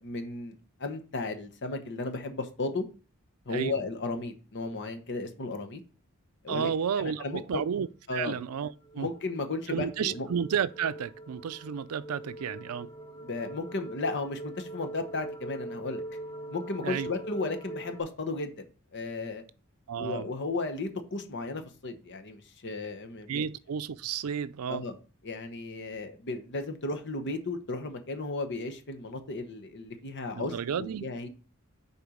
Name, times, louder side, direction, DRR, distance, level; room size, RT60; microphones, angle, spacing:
voice 1, 0.0-2.8 3.5-5.8 6.4-6.7 7.0-7.6 8.1-8.5 9.0-10.3 13.2-16.0 16.5-18.7 18.9-19.4 20.0-23.4 24.7-25.0 25.2-31.3, left 3 dB, 55° left, 1.0 m, -34 dB
voice 2, 6.5-7.9 8.1-9.1 9.7-12.9 16.8-17.1 19.9-20.2 23.3-24.8 30.4-31.0, right 7 dB, 85° right, 0.4 m, -32 dB
sound 1, 8.8-18.0, right 1 dB, 25° left, 1.2 m, -42 dB
6.9 x 4.3 x 5.0 m
head